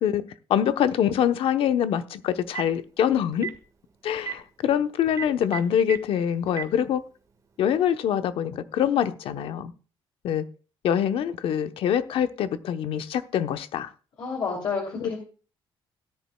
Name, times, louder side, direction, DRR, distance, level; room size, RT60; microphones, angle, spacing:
voice 1, 0.0-3.5 4.0-7.0 7.6-9.7 10.2-10.5 10.8-13.9 15.0-15.2, left 9 dB, 75° left, 0.9 m, -25 dB
Telephone, 2.3-2.8 3.3-3.6 4.2-4.3 5.1-6.0 6.5-6.6, right 8 dB, 35° right, 1.6 m, -32 dB
voice 2, 14.2-15.2, left 5 dB, 55° left, 2.9 m, -29 dB
17.5 x 10.5 x 2.3 m
cardioid pair, 145°, 9 cm